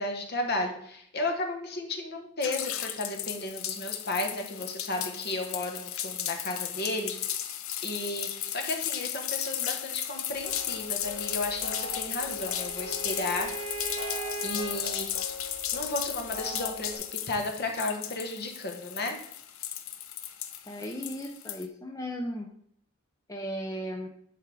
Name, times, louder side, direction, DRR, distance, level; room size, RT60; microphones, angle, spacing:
voice 1, 0.0-7.2 7.8-13.5 14.4-15.1 15.4-19.2, left 2 dB, 45° left, 3 dB, 1.2 m, -33 dB
sound 1, 2.4-21.6, left 11 dB, 70° left, 0.6 m, -35 dB
sound 2, 10.3-17.0, left 1 dB, 35° right, 3.0 m, -42 dB
Bowed string instrument, 11.6-14.8, right 5 dB, 10° right, 2.2 m, -39 dB
voice 2, 20.7-22.5 23.3-24.1, equal, 15° left, 1 dB, 0.5 m, -36 dB
10.0 x 3.6 x 4.8 m, 0.69 s
head